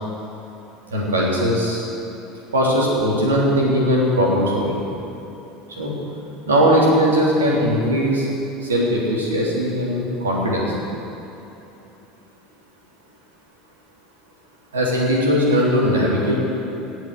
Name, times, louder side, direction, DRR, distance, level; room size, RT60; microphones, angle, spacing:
voice 1, 0.9-1.8 2.5-4.8 5.8-5.9 6.5-8.3 8.6-10.7 14.7-16.4, equal, 80° right, -4 dB, 3.2 m, -19 dB
17.5 x 6.4 x 8.2 m, 3.0 s
figure-of-eight pair, 70°, 0 cm